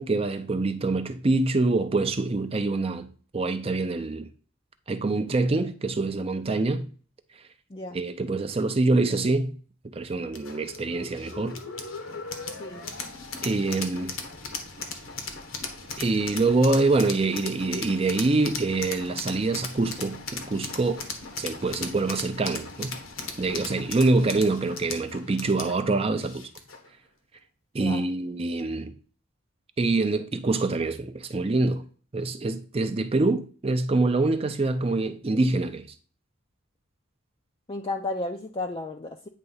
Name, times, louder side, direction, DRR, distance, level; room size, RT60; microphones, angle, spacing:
voice 1, 0.0-3.1 3.3-4.3 4.9-6.9 7.9-9.5 9.8-11.6 13.4-14.1 16.0-21.1 21.4-22.9 23.4-26.5 27.7-28.9 29.8-31.8 32.1-35.9, right 3 dB, 30° right, 0.5 m, -25 dB
sound 1, 10.3-26.9, left 4 dB, 75° left, 1.3 m, -37 dB
voice 2, 27.8-28.1 37.7-39.3, left 2 dB, 25° left, 0.5 m, -33 dB
9.1 x 3.3 x 5.5 m
head